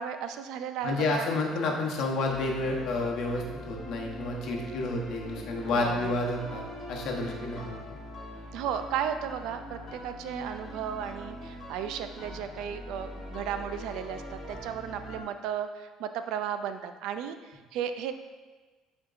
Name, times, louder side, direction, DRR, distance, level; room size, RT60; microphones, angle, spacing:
voice 1, 0.0-1.3 5.7-6.2 8.5-14.2 14.5-18.1, right 8 dB, 70° right, 9 dB, 0.3 m, -34 dB
voice 2, 0.8-8.0, left 2 dB, 50° left, 0 dB, 0.9 m, -30 dB
sound 1, 2.3-15.2, left 1 dB, 25° left, 1.3 m, -42 dB
8.6 x 4.3 x 2.5 m, 1.3 s
cardioid pair, 170°, 0 cm